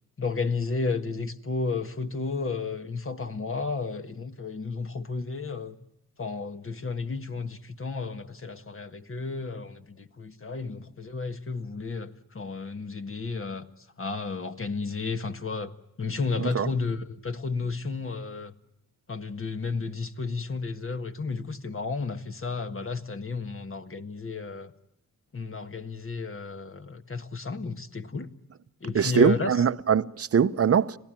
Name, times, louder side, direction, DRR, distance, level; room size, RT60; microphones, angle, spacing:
voice 1, 0.2-5.8 6.2-13.7 14.0-15.7 16.0-18.5 19.1-24.7 25.3-28.3 28.8-29.5, left 4 dB, 35° left, 1.6 m, -32 dB
voice 2, 28.9-31.0, right 7 dB, 40° right, 0.9 m, -22 dB
26.5 x 16.5 x 9.1 m
cardioid pair, 65°, 35 cm